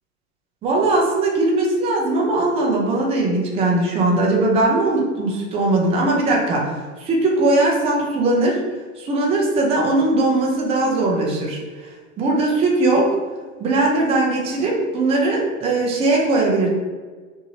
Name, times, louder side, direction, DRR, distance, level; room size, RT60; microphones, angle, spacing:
voice 1, 0.6-8.6 9.0-13.1 13.6-16.7, right 2 dB, 15° right, -2 dB, 0.4 m, -19 dB
2.7 x 2.6 x 2.8 m, 1.4 s
hypercardioid pair, 115°, 42 cm